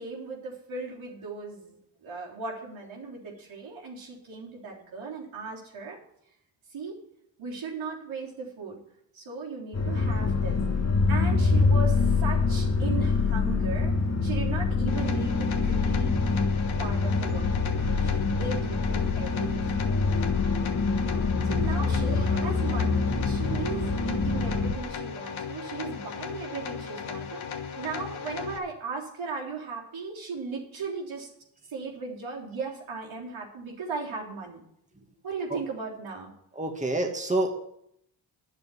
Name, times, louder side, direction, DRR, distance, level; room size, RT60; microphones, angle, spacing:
voice 1, 0.0-1.8 2.0-6.0 6.7-7.0 7.4-8.8 9.1-10.6 11.1-13.9 14.2-16.2 16.8-19.9 21.4-27.4 27.8-31.3 31.7-34.6 35.2-36.3, right 4 dB, 80° right, -3 dB, 3.6 m, -37 dB
sound 1, 9.7-24.7, left 4 dB, 35° left, 1.4 m, -25 dB
sound 2, 14.9-28.6, left 6 dB, 80° left, 1.5 m, -37 dB
voice 2, 36.6-37.5, right 2 dB, 15° right, 3 dB, 1.8 m, -27 dB
10.0 x 6.8 x 9.1 m, 0.73 s
cardioid pair, 70°, 46 cm